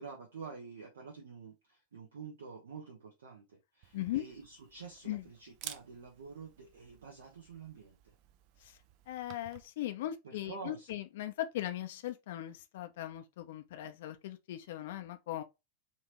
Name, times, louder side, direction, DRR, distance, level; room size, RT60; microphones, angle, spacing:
voice 1, 0.0-3.4 3.7-8.1 10.2-10.9, right 5 dB, 65° right, 1.0 m, -48 dB
Camera, 3.8-9.7, right 12 dB, 45° right, 0.4 m, -53 dB
voice 2, 3.9-4.2 5.1-5.3 8.6-8.8 9.1-15.4, left 13 dB, 55° left, 0.5 m, -39 dB
4.4 x 2.7 x 2.9 m
figure-of-eight pair, 90°, 0 cm